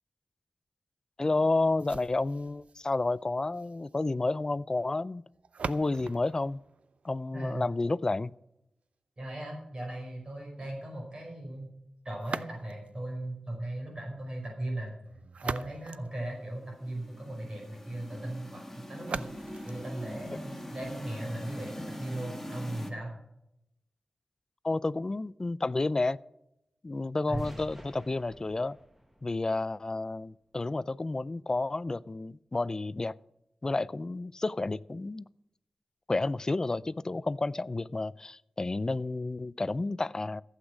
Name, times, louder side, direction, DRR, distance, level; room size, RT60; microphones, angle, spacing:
voice 1, 1.2-5.2 5.7-6.6 7.0-8.3 24.6-26.2 26.8-28.8 29.2-33.1 33.6-35.2 36.1-40.4, left 2 dB, 30° left, 19 dB, 0.4 m, -30 dB
sound 1, 1.8-7.8 12.2-13.0 15.0-17.0 19.0-21.0, right 5 dB, 75° right, 0.5 m, -43 dB
voice 2, 7.3-7.7 9.2-11.7 12.0-14.9 15.4-23.1 27.3-27.4, right 1 dB, 40° right, 0 dB, 5.1 m, -38 dB
sound 2, 16.5-22.9, equal, 10° left, 2.1 m, -43 dB
sound 3, 27.3-30.3, right 1 dB, 10° right, 1.5 m, -49 dB
15.0 x 8.2 x 6.1 m, 0.83 s
wide cardioid pair, 90°, 2 cm